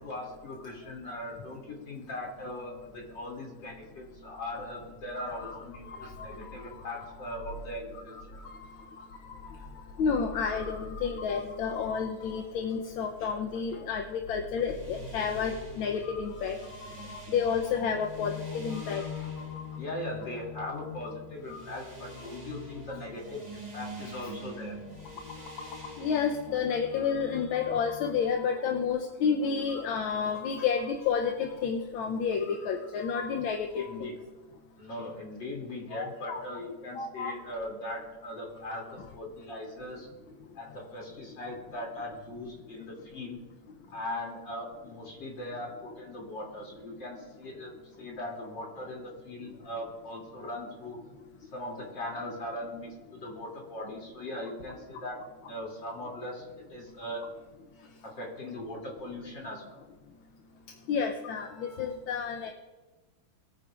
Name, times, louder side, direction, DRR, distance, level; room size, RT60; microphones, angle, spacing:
voice 1, 0.0-8.4 19.8-24.8 33.7-34.2 34.8-40.1 40.6-43.4 43.9-51.0 51.4-55.2 55.5-57.2 58.0-59.8, left 1 dB, 60° left, -2 dB, 3.5 m, -39 dB
voice 2, 10.0-16.6 17.3-19.0 21.5-21.6 26.0-33.9 35.9-36.6 37.0-37.3 60.9-62.5, left 6 dB, 75° left, 4 dB, 1.6 m, -30 dB
sound 1, 14.5-28.2, left 3 dB, 20° right, 2.3 m, -44 dB
22.0 x 9.7 x 2.5 m, 1.2 s
omnidirectional pair, 2.3 m